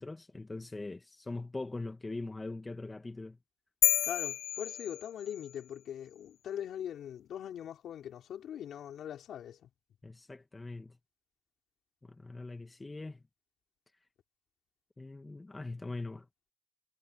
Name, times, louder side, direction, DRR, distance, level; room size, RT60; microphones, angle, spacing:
voice 1, 0.0-3.4 10.0-11.0 12.0-13.2 15.0-16.3, left 2 dB, 20° left, 1.4 m, -42 dB
sound 1, 3.8-5.5, left 12 dB, 90° left, 1.1 m, -30 dB
voice 2, 4.0-9.7, left 10 dB, 70° left, 4.7 m, -41 dB
cardioid pair, 90°, 0 cm